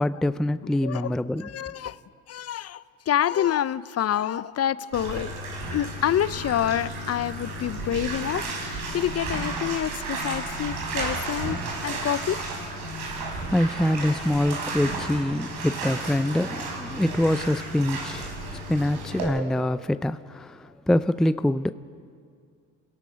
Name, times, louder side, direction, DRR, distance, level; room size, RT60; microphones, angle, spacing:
voice 1, 0.0-1.5 13.5-21.7, left 1 dB, ahead, 13 dB, 0.4 m, -25 dB
voice 2, 0.8-1.1 1.4-2.0 2.3-5.3 5.7-11.6 11.8-12.4, left 10 dB, 40° left, 17 dB, 0.6 m, -27 dB
Bathtub (filling or washing), 4.9-19.2, right 2 dB, 75° right, 5.4 m, -33 dB
28.0 x 17.0 x 5.8 m, 2.2 s
supercardioid pair, 75°, 38 cm